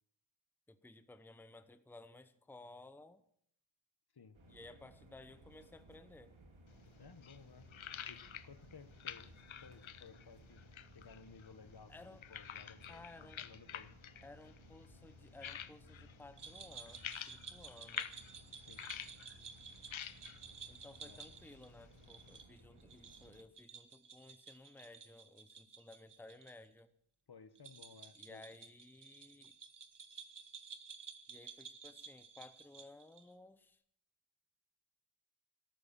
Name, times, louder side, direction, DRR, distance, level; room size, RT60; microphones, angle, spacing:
voice 1, 0.7-3.2 4.5-6.3 11.9-12.2 12.8-13.4 14.2-18.2 20.7-26.9 28.1-29.5 31.3-33.8, left 2 dB, 5° left, 12 dB, 0.9 m, -57 dB
sound 1, 4.3-23.4, right 1 dB, 70° right, 2.6 m, -61 dB
sound 2, 6.7-22.4, left 9 dB, 75° left, 0.9 m, -50 dB
voice 2, 7.0-7.7 8.1-9.3 9.6-10.6 10.9-13.0 13.4-13.9 18.5-18.9 21.0-21.2 27.3-28.4, left 5 dB, 50° left, 13 dB, 1.2 m, -58 dB
jingle jangle bells stereo, 16.4-26.5 26.8-26.9 27.5-33.3, right 5 dB, 55° right, 1.5 m, -54 dB
13.5 x 12.5 x 7.4 m, 0.67 s
wide cardioid pair, 90°, 48 cm